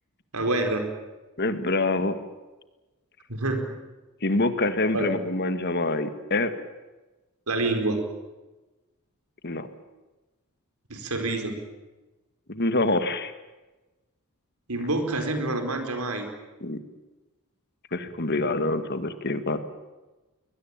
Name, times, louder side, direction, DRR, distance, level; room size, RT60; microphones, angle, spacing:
voice 1, 0.3-0.8 3.3-3.7 4.9-5.1 7.5-8.0 10.9-11.6 14.7-16.3, right 2 dB, 80° right, 6 dB, 4.5 m, -27 dB
voice 2, 1.4-2.2 4.2-6.5 9.4-9.7 12.5-13.3 16.6-16.8 17.9-19.6, left 2 dB, 50° left, 10 dB, 1.8 m, -26 dB
22.5 x 20.5 x 8.9 m, 1.1 s
head